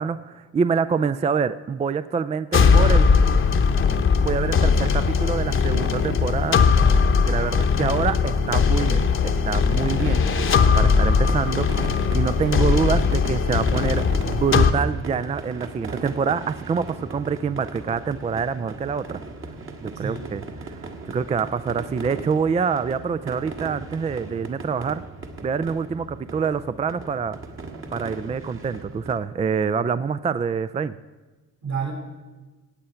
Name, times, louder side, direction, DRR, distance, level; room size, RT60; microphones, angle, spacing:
voice 1, 0.0-3.1 4.2-6.6 7.2-10.3 10.8-19.2 19.8-25.0 25.4-27.4 27.9-30.9, right 6 dB, 25° right, 13 dB, 0.3 m, -26 dB
sound 1, 2.5-14.7, left 5 dB, 40° left, 0.9 m, -19 dB
voice 2, 7.4-8.0 20.0-20.4 31.6-31.9, right 5 dB, 70° right, 0 dB, 5.3 m, -32 dB
sound 2, 9.7-29.2, right 3 dB, 45° right, 1.6 m, -37 dB
15.5 x 8.6 x 5.7 m, 1.2 s
cardioid pair, 90°, 30 cm